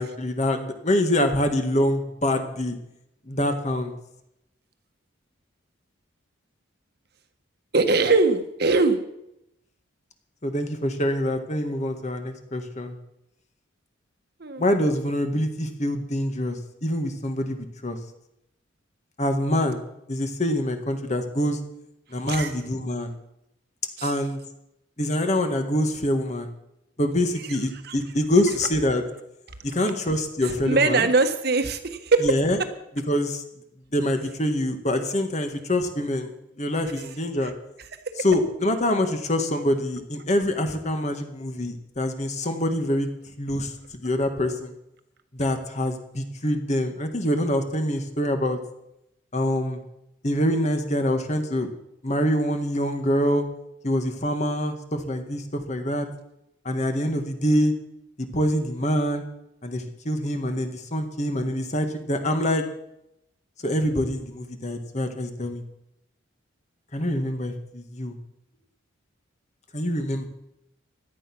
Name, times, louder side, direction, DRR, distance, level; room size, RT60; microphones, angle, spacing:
voice 1, 0.0-2.8 3.3-3.9 10.4-12.9 14.6-18.0 19.2-19.8 20.1-21.6 22.1-23.1 24.0-24.4 25.0-26.5 27.0-29.0 29.6-31.1 32.2-32.6 33.1-33.4 33.9-37.5 38.2-43.1 43.4-44.7 45.3-48.6 49.3-49.8 50.2-51.7 52.0-53.4 53.8-56.1 56.7-57.7 58.2-59.2 59.6-62.7 63.6-65.6 66.9-68.1 69.7-70.3, left 1 dB, 35° left, 6 dB, 1.8 m, -25 dB
voice 2, 7.7-9.0 14.4-14.6 22.3-22.5 24.0-24.1 27.8-28.0 30.4-32.3 37.4-37.5, right 3 dB, 50° right, 8 dB, 1.4 m, -21 dB
17.0 x 12.0 x 6.1 m, 0.82 s
head